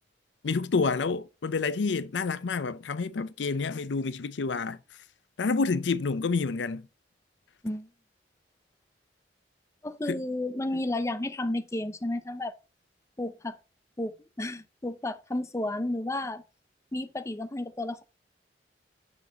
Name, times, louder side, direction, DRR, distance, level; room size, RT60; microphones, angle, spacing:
voice 1, 0.4-4.8 5.4-6.9 10.1-10.2, left 4 dB, 90° left, 0.5 m, -28 dB
voice 2, 9.8-12.5 13.2-13.6 14.0-16.4 16.9-18.0, left 1 dB, 15° left, 0.5 m, -32 dB
7.0 x 4.1 x 5.1 m
head